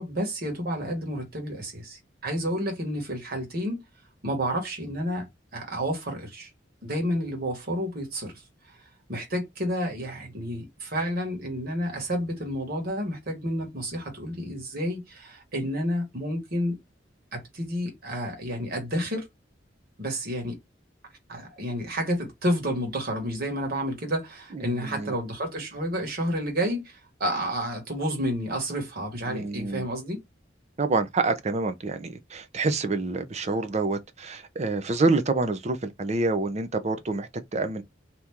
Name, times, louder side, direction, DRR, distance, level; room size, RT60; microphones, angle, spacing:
voice 1, 0.0-3.8 4.2-5.3 5.5-6.5 6.8-8.4 9.1-16.8 17.3-19.3 20.0-20.6 21.3-30.2, equal, 55° right, 1.5 m, -30 dB
voice 2, 24.5-25.1 29.3-29.9 30.8-37.8, right 3 dB, 40° right, 0.6 m, -27 dB
3.0 x 2.6 x 3.5 m
head